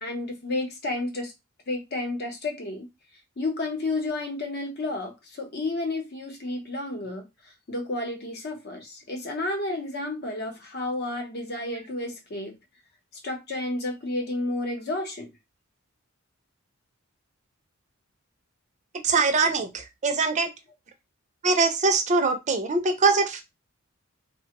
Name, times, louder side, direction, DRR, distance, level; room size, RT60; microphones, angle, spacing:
voice 1, 0.0-1.3 1.7-2.9 3.4-7.2 7.7-12.5 13.2-15.3, left 2 dB, 50° left, 0.8 m, -31 dB
voice 2, 19.0-20.5 21.4-23.4, right 4 dB, 35° right, 0.5 m, -23 dB
3.2 x 2.1 x 2.9 m
head